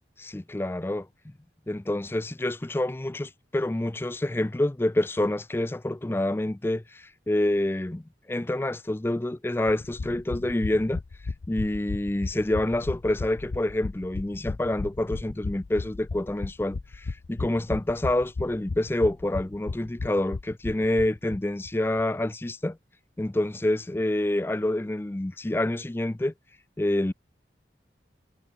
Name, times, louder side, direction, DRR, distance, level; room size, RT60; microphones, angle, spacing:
voice 1, 0.2-1.3 1.7-8.0 8.3-11.0 11.5-22.8 23.2-26.3 26.8-27.1, left 1 dB, 15° left, 0.4 m, -27 dB
sound 1, 9.7-21.4 21.7-21.8 22.0-22.1, left 3 dB, 75° left, 0.6 m, -35 dB
head